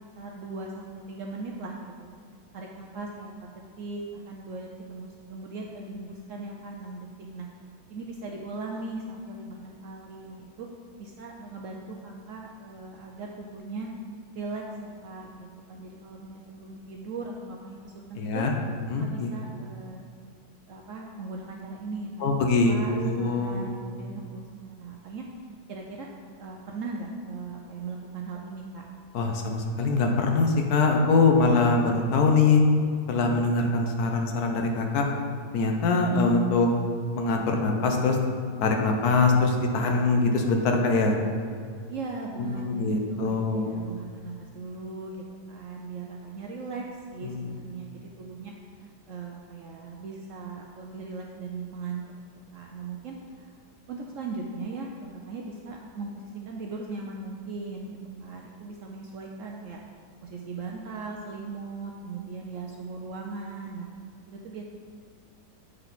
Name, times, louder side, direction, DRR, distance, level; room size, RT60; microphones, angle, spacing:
voice 1, 0.2-1.9 2.5-3.4 3.8-7.1 7.3-7.5 7.9-10.7 11.0-13.9 14.3-18.5 19.0-20.0 20.7-25.3 25.7-26.1 26.4-28.8 41.9-46.8 47.1-48.5 48.8-52.0 52.5-53.5 53.9-59.8 60.2-63.9 64.3-64.6, right 3 dB, 65° right, 0 dB, 0.8 m, -38 dB
voice 2, 18.2-18.5 18.9-19.3 22.2-23.7 29.1-32.6 33.1-35.1 35.5-36.7 37.2-38.2 38.6-41.2 42.5-43.7 47.2-47.5, left 3 dB, 70° left, 2 dB, 1.2 m, -23 dB
7.9 x 4.3 x 4.0 m, 2.2 s
omnidirectional pair, 1.8 m